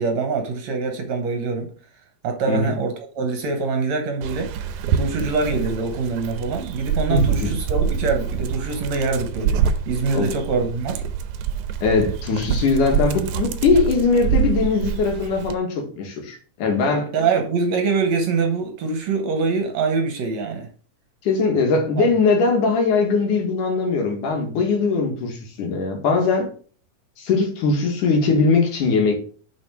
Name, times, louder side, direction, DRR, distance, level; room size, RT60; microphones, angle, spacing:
voice 1, 0.0-1.7 2.2-4.5 4.9-9.6 9.9-11.0 17.1-20.7 22.0-22.1, right 4 dB, 65° right, 2.2 m, -24 dB
Dog, 4.2-15.6, right 7 dB, 85° right, 2.1 m, -26 dB
voice 2, 7.1-7.5 10.1-10.3 11.8-17.1 21.2-26.5 27.2-29.2, left 4 dB, 85° left, 3.5 m, -20 dB
6.3 x 6.1 x 4.7 m
omnidirectional pair, 3.5 m